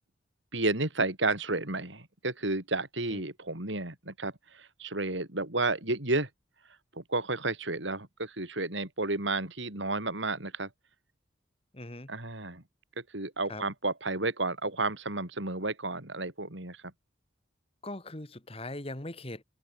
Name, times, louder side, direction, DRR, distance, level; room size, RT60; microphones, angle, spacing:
voice 1, 0.5-6.3 7.0-10.7 12.1-12.6 13.0-16.8, right 2 dB, 70° right, 4.7 m, -32 dB
voice 2, 11.7-12.1 13.5-13.6 17.8-19.4, left 2 dB, 30° left, 1.9 m, -40 dB
head